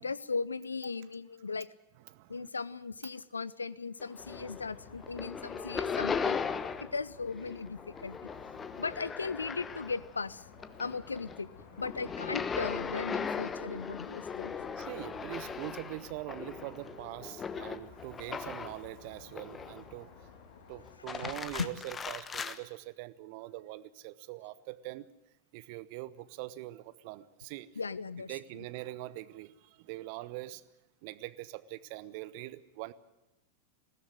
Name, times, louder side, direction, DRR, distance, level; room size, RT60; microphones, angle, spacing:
voice 1, 0.0-1.7 2.3-6.4 6.8-8.3 8.8-10.5 10.8-11.5 11.8-14.6 21.1-21.7 27.8-28.7, left 4 dB, 75° left, 20 dB, 0.7 m, -37 dB
voice 2, 2.1-2.5 5.5-5.6 8.5-8.8 14.5-20.3 20.7-25.1 25.5-27.7 28.3-30.6 31.0-32.9, right 17 dB, 45° right, 18 dB, 1.0 m, -43 dB
sound 1, 4.0-4.7 5.0-7.0 7.3-10.2 10.5-18.9 19.3-20.0 20.9-22.6, left 6 dB, 20° left, 1.1 m, -38 dB
sound 2, 4.2-21.0, left 6 dB, 55° left, 3.3 m, -54 dB
20.5 x 17.0 x 9.0 m, 0.95 s
figure-of-eight pair, 90°, 0 cm